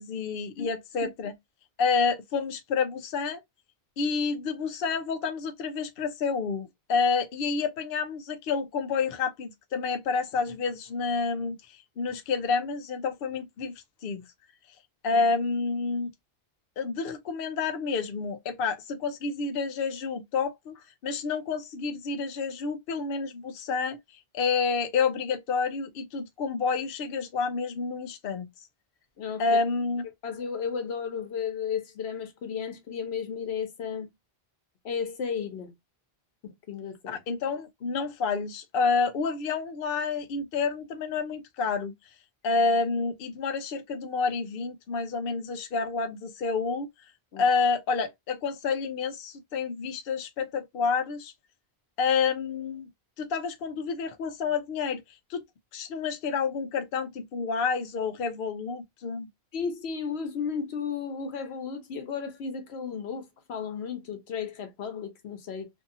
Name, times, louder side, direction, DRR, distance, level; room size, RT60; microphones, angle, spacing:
voice 1, 0.0-1.3 1.8-3.4 4.0-13.7 14.0-14.2 15.0-16.1 16.8-20.7 21.0-24.0 24.3-28.5 29.4-30.0 37.1-41.9 42.4-46.9 47.4-51.3 52.0-52.9 53.2-55.0 55.3-55.4 55.7-59.3, left 4 dB, 70° left, 0.7 m, -29 dB
voice 2, 30.2-34.1 34.8-35.7 36.4-37.2 47.3-47.5 59.5-65.7, left 6 dB, 85° left, 1.1 m, -34 dB
2.7 x 2.6 x 2.4 m
omnidirectional pair, 1.0 m